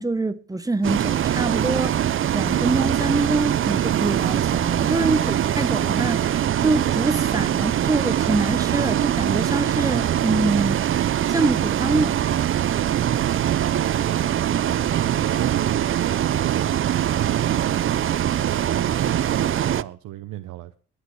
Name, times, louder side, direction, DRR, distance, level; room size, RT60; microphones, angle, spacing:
voice 1, 0.0-2.1 2.3-10.8 11.3-12.2, right 2 dB, 10° right, 0.9 m, -25 dB
Bus, 0.8-19.8, right 10 dB, 45° right, 0.5 m, -22 dB
voice 2, 12.9-16.1 16.4-20.7, right 13 dB, 85° right, 0.8 m, -34 dB
21.5 x 8.2 x 3.2 m
cardioid pair, 90°, 30 cm